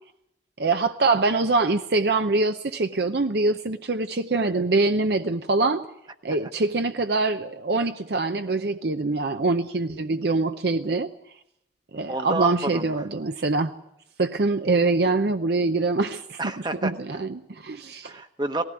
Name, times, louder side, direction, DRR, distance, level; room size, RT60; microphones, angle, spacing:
voice 1, 0.6-5.8 6.2-11.1 11.9-13.7 14.2-16.4 16.8-18.2, right 3 dB, 60° right, 8 dB, 0.7 m, -24 dB
voice 2, 12.1-12.9 16.4-16.9 18.0-18.6, right 2 dB, 25° right, 7 dB, 1.1 m, -29 dB
18.5 x 15.5 x 9.8 m, 0.81 s
head